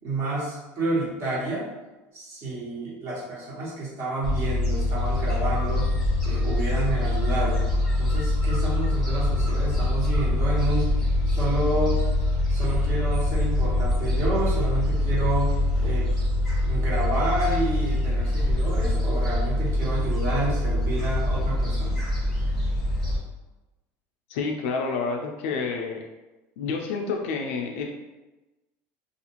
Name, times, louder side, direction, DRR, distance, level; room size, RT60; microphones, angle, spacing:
voice 1, 0.0-1.7 2.1-5.9 6.2-7.7 8.0-10.9 11.2-12.0 12.5-16.1 16.6-22.0, right 2 dB, 45° right, -6 dB, 1.2 m, -29 dB
Gull seagull, 4.2-23.2, left 1 dB, 5° left, 1.1 m, -24 dB
voice 2, 24.3-26.0 26.6-27.9, left 4 dB, 85° left, 1 dB, 0.3 m, -29 dB
2.5 x 2.4 x 2.8 m, 1.1 s
supercardioid pair, 130°, 7 cm